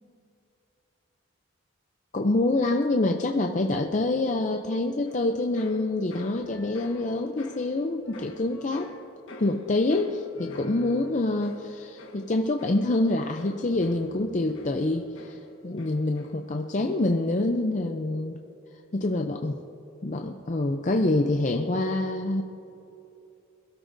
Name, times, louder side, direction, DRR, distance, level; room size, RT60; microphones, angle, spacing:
voice 1, 2.1-9.0 9.4-18.4 18.9-19.6 20.0-22.4, left 2 dB, 35° left, 4 dB, 0.5 m, -26 dB
sound 1, 5.1-16.7 16.9-17.5, left 1 dB, 65° left, 1.4 m, -48 dB
22.5 x 12.5 x 2.6 m, 2.9 s
head